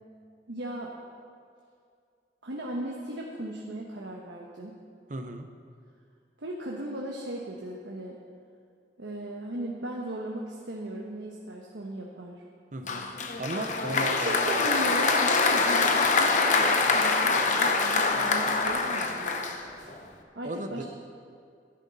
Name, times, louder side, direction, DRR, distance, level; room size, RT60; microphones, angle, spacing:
voice 1, 0.5-0.9 2.4-4.8 6.4-8.2 9.0-12.4 13.9-19.4 20.3-20.8, right 1 dB, 90° right, -2 dB, 1.2 m, -37 dB
voice 2, 5.1-5.5 12.7-13.0 13.4-14.6 20.4-20.8, right 2 dB, 45° right, 7 dB, 0.8 m, -35 dB
Applause, 12.9-20.0, left 4 dB, 45° left, 0.9 m, -25 dB
14.5 x 11.0 x 4.1 m, 2.3 s
head